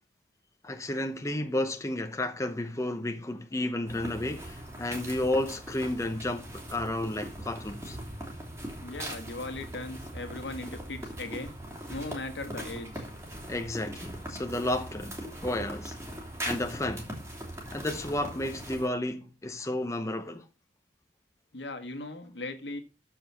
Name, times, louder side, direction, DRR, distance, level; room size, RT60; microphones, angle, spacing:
voice 1, 0.6-8.0 13.5-15.9 16.4-17.1 17.7-20.4, left 1 dB, 15° left, 0.8 m, -32 dB
sound 1, 3.9-18.9, right 1 dB, 15° right, 3.0 m, -40 dB
voice 2, 8.8-11.6 11.9-13.1 21.5-22.8, left 2 dB, 75° left, 1.7 m, -38 dB
13.5 x 4.9 x 5.6 m
head